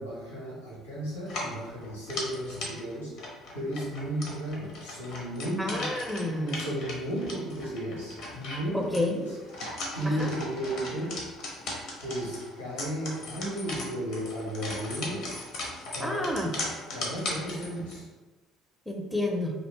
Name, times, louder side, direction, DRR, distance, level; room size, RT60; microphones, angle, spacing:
voice 1, 0.0-5.9 6.5-11.4 12.0-15.3 15.9-16.3 16.9-18.1, equal, 85° left, -6 dB, 1.5 m, -34 dB
sound 1, 1.2-18.0, left 2 dB, 55° left, 0.8 m, -38 dB
voice 2, 5.6-6.6 8.7-9.2 10.2-10.3 16.0-16.5 18.9-19.5, left 1 dB, ahead, 0 dB, 0.6 m, -29 dB
3.1 x 2.7 x 3.2 m, 1.2 s
figure-of-eight pair, 55°, 0 cm